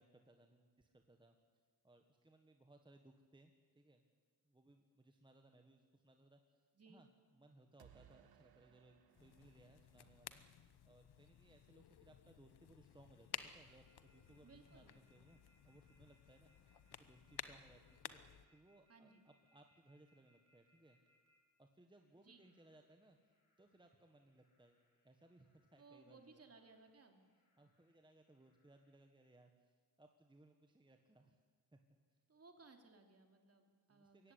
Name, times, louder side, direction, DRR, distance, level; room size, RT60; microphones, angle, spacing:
voice 1, 0.0-1.3 1.8-4.0 4.4-7.1 7.3-10.4 10.8-18.2 18.5-21.0 21.6-23.3 23.6-26.4 27.6-31.4 31.7-31.8 33.9-34.3, right 2 dB, 10° right, 4 dB, 1.4 m, -66 dB
sound 1, 7.8-10.7, right 9 dB, 70° right, 1.3 m, -68 dB
sound 2, 9.1-18.4, left 9 dB, 80° left, 1.2 m, -55 dB
sound 3, 13.7-21.4 21.9-29.4, equal, 50° left, 7.7 m, -80 dB
voice 2, 14.4-14.9 18.9-19.2 22.2-22.4 25.8-27.2 32.3-34.3, right 4 dB, 40° right, 5 dB, 2.8 m, -63 dB
22.0 x 16.5 x 9.9 m, 1.5 s
wide cardioid pair, 145°, 38 cm